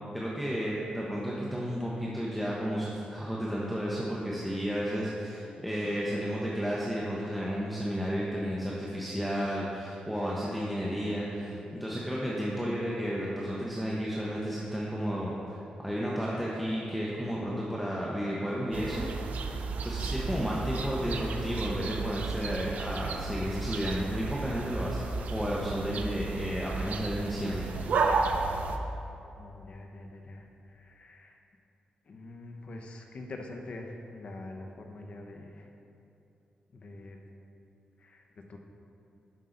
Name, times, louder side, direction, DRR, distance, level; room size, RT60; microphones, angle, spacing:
voice 1, 0.1-19.1 19.8-27.7, equal, ahead, -5 dB, 0.9 m, -32 dB
sound 1, 18.7-28.8, right 4 dB, 75° right, 0.6 m, -33 dB
voice 2, 20.0-20.4 29.4-31.4 32.1-35.7 36.7-37.2 38.0-38.6, left 2 dB, 50° left, 2 dB, 0.9 m, -45 dB
11.0 x 5.6 x 3.9 m, 2.8 s
wide cardioid pair, 120°, 3 cm